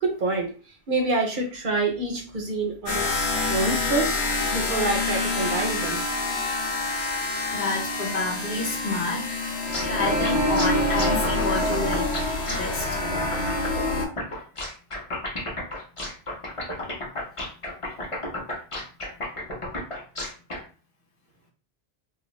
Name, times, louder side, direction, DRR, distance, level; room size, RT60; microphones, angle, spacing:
voice 1, 0.0-0.5 0.9-6.0, right 3 dB, 55° right, 1 dB, 0.7 m, -27 dB
sound 1, 2.9-14.1, left 2 dB, 80° left, 0.9 m, -26 dB
voice 2, 7.5-9.4 9.8-12.1 12.5-13.0 17.8-18.0, left 3 dB, 60° left, -2 dB, 1.0 m, -29 dB
sound 2, 9.7-20.6, left 1 dB, 35° left, 0.8 m, -32 dB
2.4 x 2.3 x 3.0 m, 0.38 s
omnidirectional pair, 1.1 m